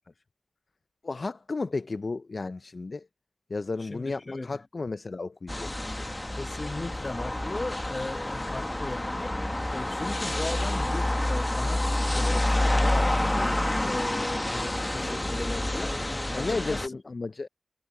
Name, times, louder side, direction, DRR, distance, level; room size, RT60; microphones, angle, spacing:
voice 1, 1.0-3.1 3.5-6.1 16.3-17.5, left 3 dB, 60° left, 0.4 m, -33 dB
voice 2, 3.8-4.6 6.4-9.3 9.7-16.0 16.3-16.9, left 2 dB, 45° left, 1.1 m, -37 dB
sound 1, 5.5-16.9, left 1 dB, 20° left, 1.1 m, -28 dB
wide cardioid pair, 60°, 0 cm